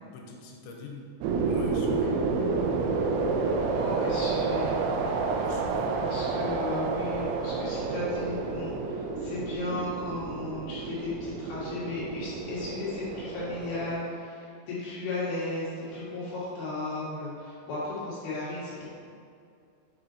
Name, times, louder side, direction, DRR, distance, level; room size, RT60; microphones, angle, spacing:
voice 1, 0.1-1.0 1.5-2.1 5.4-5.9, left 3 dB, 85° left, 1 dB, 3.2 m, -43 dB
sound 1, 1.2-13.9, right 4 dB, 80° right, 2.7 m, -30 dB
voice 2, 3.7-4.8 6.0-18.8, left 2 dB, 60° left, -9 dB, 3.2 m, -35 dB
7.4 x 5.6 x 3.9 m, 2.4 s
omnidirectional pair, 5.3 m